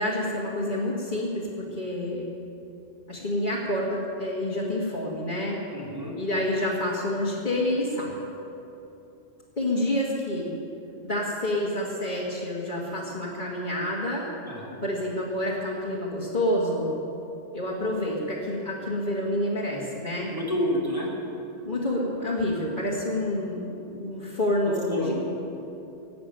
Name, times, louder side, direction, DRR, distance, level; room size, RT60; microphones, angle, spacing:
voice 1, 0.0-2.3 3.1-5.6 6.2-8.2 9.6-10.5 11.0-14.3 14.8-16.9 17.5-20.3 21.6-23.6 23.9-25.2, left 1 dB, 40° left, -7 dB, 2.2 m, -28 dB
voice 2, 5.7-6.1 14.5-14.8 20.3-21.1 24.6-25.2, left 1 dB, 20° right, -5 dB, 3.5 m, -29 dB
18.5 x 8.5 x 9.2 m, 2.9 s
omnidirectional pair, 1.2 m